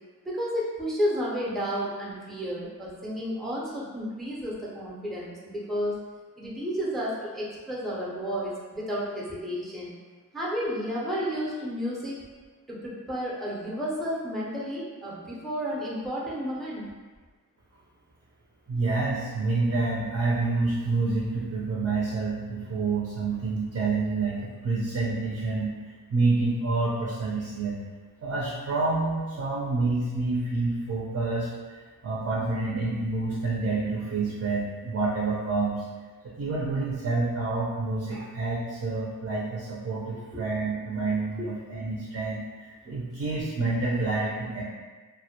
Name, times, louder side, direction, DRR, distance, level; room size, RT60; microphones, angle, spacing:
voice 1, 0.2-6.0 6.4-10.0 10.3-12.2 12.7-16.8 41.4-41.5, equal, ahead, -5 dB, 0.6 m, -31 dB
voice 2, 18.7-27.8 28.2-35.8 36.2-44.6, right 3 dB, 45° right, -6 dB, 0.6 m, -28 dB
2.1 x 2.0 x 2.8 m, 1.4 s
cardioid pair, 60°, 34 cm